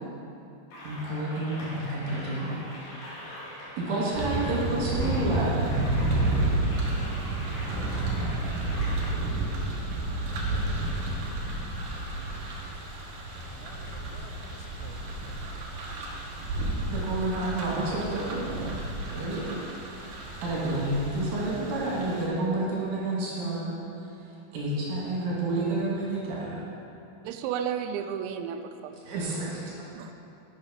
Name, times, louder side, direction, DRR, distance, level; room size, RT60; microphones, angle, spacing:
sound 1, 0.7-9.1, equal, 65° left, 4.1 m, -42 dB
voice 1, 0.8-2.5 3.9-5.7 16.9-18.7 19.1-19.6 20.4-23.8 24.5-26.6 29.0-29.9, right 2 dB, 55° right, 2.8 m, -30 dB
sound 2, 4.1-22.3, right 2 dB, 70° right, 2.1 m, -31 dB
voice 2, 7.2-8.2 13.5-15.4 20.0-20.1, left 8 dB, 85° left, 2.9 m, -52 dB
voice 3, 27.2-28.9 30.0-30.3, right 8 dB, 85° right, 2.8 m, -33 dB
9.8 x 7.4 x 5.1 m
omnidirectional pair, 5.1 m